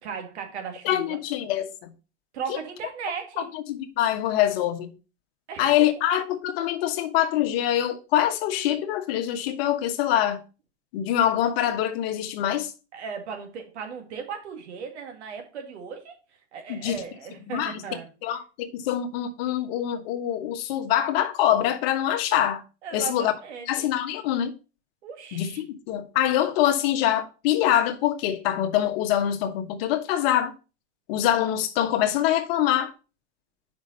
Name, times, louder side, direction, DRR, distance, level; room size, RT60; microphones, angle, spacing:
voice 1, 0.0-1.2 2.3-3.5 5.5-5.7 12.9-16.2 16.5-18.1 22.8-23.9 25.0-25.6, right 6 dB, 75° right, 2.2 m, -37 dB
voice 2, 0.8-1.6 3.5-4.9 5.6-10.4 10.9-12.7 16.7-17.0 17.5-17.8 18.2-22.6 22.9-23.3 23.7-24.5 25.3-30.5 31.1-32.9, left 11 dB, 60° left, 1.3 m, -24 dB
5.5 x 5.1 x 5.3 m
hypercardioid pair, 105°, 34 cm